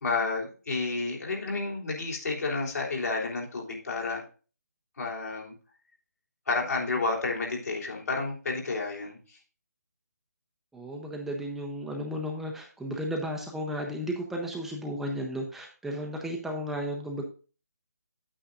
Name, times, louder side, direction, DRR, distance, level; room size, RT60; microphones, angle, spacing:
voice 1, 0.0-4.2 5.0-5.5 6.5-9.4, left 3 dB, 65° left, -2 dB, 3.3 m, -31 dB
voice 2, 10.7-17.2, equal, 5° right, 0 dB, 0.6 m, -34 dB
8.8 x 8.7 x 2.4 m, 0.36 s
figure-of-eight pair, 150°, 9 cm